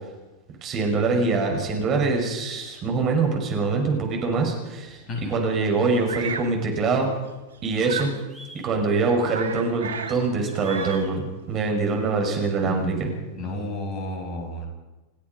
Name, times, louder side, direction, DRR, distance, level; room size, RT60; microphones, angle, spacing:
voice 1, 0.6-7.1 7.6-8.1 8.6-13.1, right 4 dB, 30° right, 2 dB, 6.2 m, -24 dB
Bird vocalization bird call bird song, 6.1-6.6 7.8-8.2 8.7-8.8 9.1-10.2 10.5-11.1, right 6 dB, 70° right, 1.6 m, -34 dB
sound 1, 7.0-7.1 7.8-8.7 9.9-11.1, right 1 dB, 5° left, 6.9 m, -45 dB
voice 2, 12.6-14.7, left 2 dB, 30° left, 2 dB, 7.3 m, -32 dB
29.0 x 16.0 x 5.5 m, 1.1 s
figure-of-eight pair, 90°, 0 cm